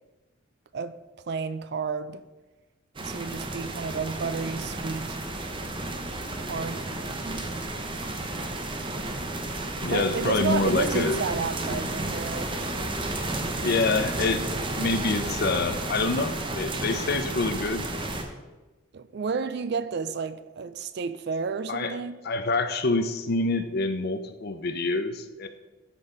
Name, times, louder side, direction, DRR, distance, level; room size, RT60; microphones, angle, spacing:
voice 1, 1.2-2.2 3.0-5.2 6.4-7.4 9.9-12.7 18.9-22.2, right 5 dB, 50° right, 0.4 m, -31 dB
sound 1, 2.9-18.2, right 2 dB, 25° right, 0.7 m, -32 dB
voice 2, 9.8-12.3 13.6-17.9 21.7-21.9 22.2-25.5, left 3 dB, 45° left, 0.5 m, -27 dB
12.5 x 4.2 x 3.8 m
head